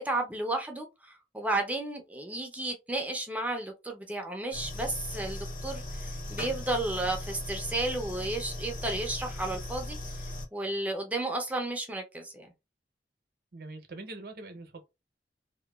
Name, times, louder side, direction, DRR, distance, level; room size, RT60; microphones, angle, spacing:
voice 1, 0.0-10.0 10.5-12.5, right 2 dB, 10° right, 0.4 m, -33 dB
sound 1, 4.5-10.5, left 1 dB, 50° left, 0.7 m, -38 dB
voice 2, 13.5-14.8, right 2 dB, 60° right, 0.7 m, -43 dB
2.8 x 2.1 x 2.2 m
head